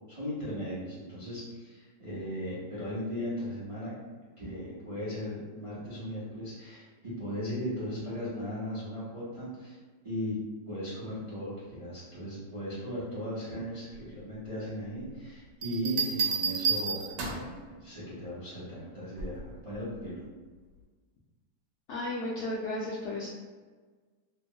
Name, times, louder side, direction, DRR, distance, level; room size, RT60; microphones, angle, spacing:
voice 1, 0.1-9.8 10.0-10.4 10.7-17.5 17.7-20.2, equal, 30° right, -10 dB, 0.6 m, -37 dB
Bell, 15.6-17.6 19.2-19.5, right 5 dB, 80° right, 1.2 m, -30 dB
voice 2, 21.9-23.3, left 1 dB, 90° left, -6 dB, 0.6 m, -34 dB
2.9 x 2.1 x 2.7 m, 1.4 s
omnidirectional pair, 1.8 m